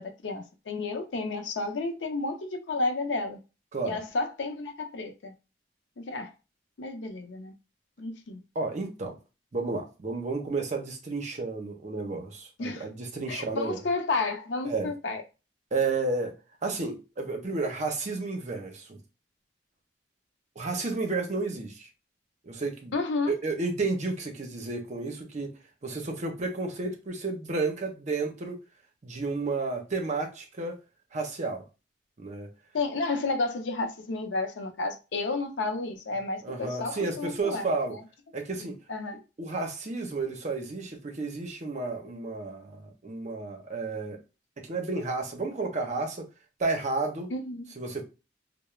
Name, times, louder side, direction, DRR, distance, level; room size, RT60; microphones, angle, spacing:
voice 1, 0.0-3.4 3.8-5.3 6.0-6.3 6.8-7.5 8.0-8.4 12.6-12.9 13.3-15.2 22.9-23.3 32.7-37.6 37.9-38.0 38.6-39.2 47.3-47.7, left 3 dB, 85° left, 0.6 m, -31 dB
voice 2, 8.5-9.2 9.5-13.8 14.6-14.9 15.7-16.4 16.6-19.0 20.6-21.9 22.4-23.0 23.3-28.6 29.0-30.8 31.1-31.6 32.2-32.5 36.4-38.0 38.3-38.8 39.4-44.2 44.6-46.3 46.6-47.3 47.8-48.0, right 3 dB, 40° right, 0.6 m, -32 dB
2.3 x 2.0 x 3.0 m
head